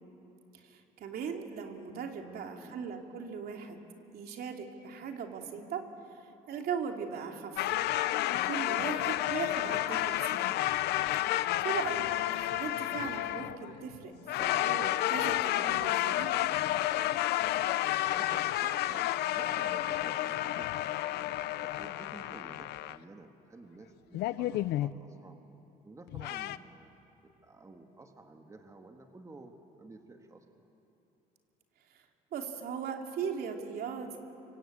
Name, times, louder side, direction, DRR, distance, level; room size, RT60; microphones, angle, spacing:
voice 1, 0.5-3.8 4.1-5.9 6.1-7.6 8.3-10.5 11.6-14.1 14.4-16.5 31.9-32.0 32.3-34.2, right 6 dB, 65° right, 3 dB, 2.9 m, -39 dB
voice 2, 2.2-2.9 14.4-14.7 18.2-20.9 21.6-25.4 25.8-27.0 27.2-30.7, right 2 dB, 20° right, 4 dB, 1.9 m, -52 dB
sound 1, 7.6-14.0 14.3-23.0 24.1-24.9 26.1-26.6, left 14 dB, 80° left, 0.7 m, -31 dB
25.5 x 25.0 x 8.7 m, 2.9 s
cardioid pair, 110°, 17 cm